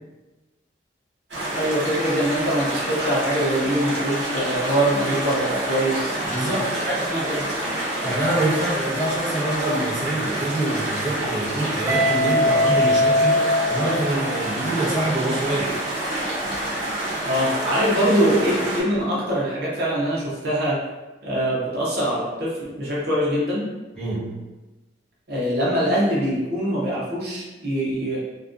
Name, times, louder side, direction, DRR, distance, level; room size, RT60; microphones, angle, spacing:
sound 1, 1.3-18.8, right 1 dB, 90° right, 1.1 m, -27 dB
voice 1, 1.5-6.1 6.7-7.4 17.2-20.8 21.2-23.7 25.3-28.2, equal, 60° right, -6 dB, 0.7 m, -23 dB
voice 2, 6.3-6.8 8.0-15.7 24.0-24.4, right 1 dB, 5° left, -11 dB, 0.9 m, -25 dB
Guitar, 11.9-14.7, left 1 dB, 15° right, 0.3 m, -21 dB
2.4 x 2.2 x 2.5 m, 1.1 s
head